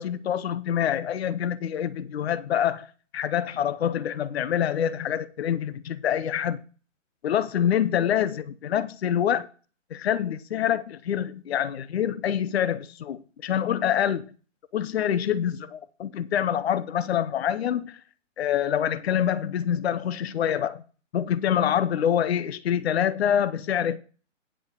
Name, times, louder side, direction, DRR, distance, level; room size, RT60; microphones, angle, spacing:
voice 1, 0.0-2.9 3.1-6.6 7.2-9.5 9.9-14.3 14.7-18.0 18.4-20.8 21.1-24.0, left 9 dB, 55° left, 0.7 m, -26 dB
9.9 x 6.1 x 4.6 m
hypercardioid pair, 140°, 38 cm